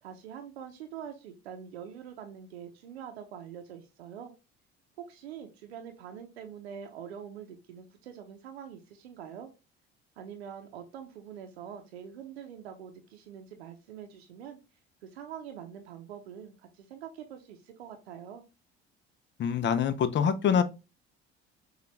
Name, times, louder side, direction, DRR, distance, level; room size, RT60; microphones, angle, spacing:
voice 1, 0.0-4.3 5.1-9.5 10.2-14.6 15.0-18.4, right 8 dB, 75° right, 0.7 m, -44 dB
voice 2, 19.4-20.6, left 7 dB, 35° left, 0.7 m, -25 dB
6.7 x 2.5 x 3.2 m
figure-of-eight pair, 55°, 32 cm